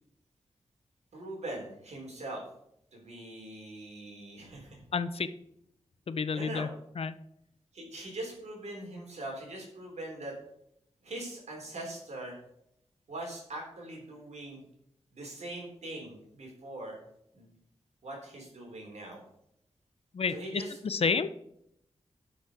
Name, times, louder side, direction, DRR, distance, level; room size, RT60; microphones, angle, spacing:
voice 1, 1.1-2.4 2.9-4.8 6.3-6.7 7.7-10.3 11.0-12.4 13.1-14.6 15.1-17.0 17.3-17.5 18.0-19.2 20.3-20.8, right 1 dB, 85° right, 0 dB, 3.9 m, -41 dB
voice 2, 4.9-5.3 6.1-6.7 7.0-7.2 20.1-21.3, left 5 dB, 60° left, 12 dB, 0.7 m, -30 dB
11.5 x 6.3 x 5.0 m, 0.76 s
wide cardioid pair, 100°, 11 cm